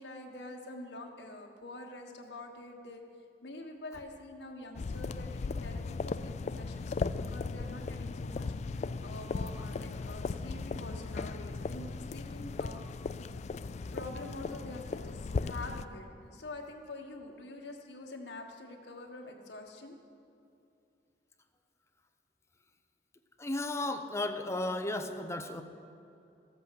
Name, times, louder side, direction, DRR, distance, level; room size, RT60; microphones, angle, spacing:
voice 1, 0.0-3.0 3.4-12.8 13.9-20.0, left 2 dB, 75° left, 1 dB, 1.5 m, -46 dB
sound 1, 4.7-15.8, left 4 dB, 40° left, 0.3 m, -37 dB
voice 2, 23.4-25.6, left 2 dB, 15° left, 7 dB, 0.7 m, -34 dB
14.0 x 8.2 x 6.6 m, 2.7 s
head